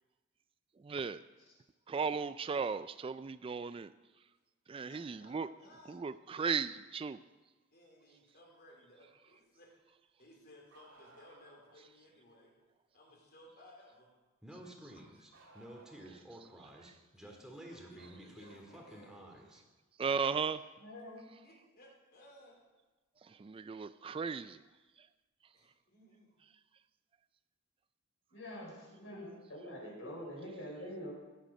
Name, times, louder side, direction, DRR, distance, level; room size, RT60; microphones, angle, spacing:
voice 1, 0.8-1.2 1.9-3.9 4.7-5.5 5.9-7.2 20.0-20.6 23.3-24.6, right 5 dB, 25° right, 13 dB, 0.3 m, -36 dB
voice 2, 4.9-6.1 7.7-9.7 10.2-12.5 12.9-14.1 14.6-15.0 17.2-19.3 21.2-22.7 23.6-23.7 25.5-26.3, left 1 dB, 50° left, 0 dB, 3.4 m, -60 dB
Bark, 10.7-11.8 15.3-16.4 18.0-19.5 21.1-21.2 23.2-23.3 24.4-24.5, right 2 dB, 80° right, 2.2 m, -61 dB
Speech, 14.4-19.6, right 1 dB, 5° right, 1.7 m, -51 dB
voice 3, 20.8-21.3 28.3-31.1, equal, 65° left, -3 dB, 5.1 m, -45 dB
16.5 x 9.1 x 5.3 m, 1.2 s
head